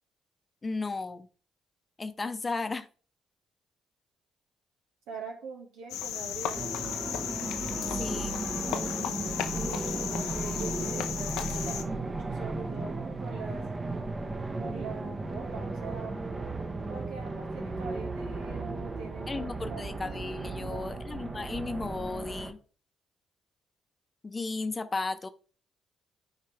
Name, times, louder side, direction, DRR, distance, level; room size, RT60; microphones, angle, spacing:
voice 1, 0.6-1.3 2.0-2.9 8.0-8.4 19.3-22.6 24.2-25.3, left 3 dB, 30° left, 0.8 m, -34 dB
voice 2, 5.1-6.7 9.5-13.6 14.6-16.1 16.9-20.9, right 4 dB, 85° right, 1.9 m, -43 dB
Cricket, 5.9-11.8, left 10 dB, 85° left, 0.6 m, -35 dB
sound 1, 6.5-22.5, right 3 dB, 30° right, 1.1 m, -35 dB
9.5 x 4.5 x 3.4 m
supercardioid pair, 55°, 0 cm